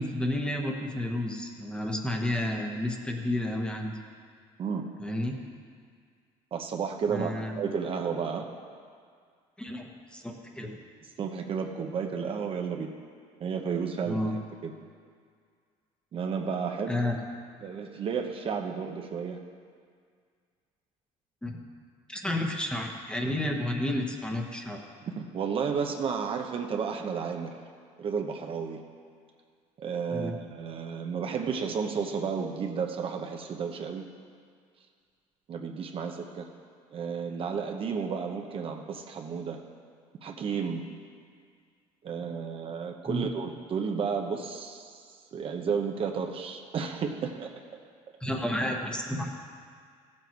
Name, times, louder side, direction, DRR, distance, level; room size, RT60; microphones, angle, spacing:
voice 1, 0.0-3.9 5.0-5.4 7.1-7.7 9.6-10.8 14.1-14.3 16.9-17.2 21.4-21.6 22.1-24.8 30.1-30.4 43.1-43.3 48.2-49.3, left 1 dB, 5° left, 2 dB, 1.2 m, -31 dB
voice 2, 6.5-8.5 11.2-12.9 13.4-14.7 16.1-17.0 17.6-19.4 25.0-27.6 28.0-28.8 29.8-34.1 35.5-36.5 36.9-39.6 40.2-40.8 42.0-45.0 45.3-47.5, right 6 dB, 45° right, 3 dB, 0.9 m, -32 dB
15.0 x 7.6 x 4.6 m, 2.1 s
cardioid pair, 110°, 13 cm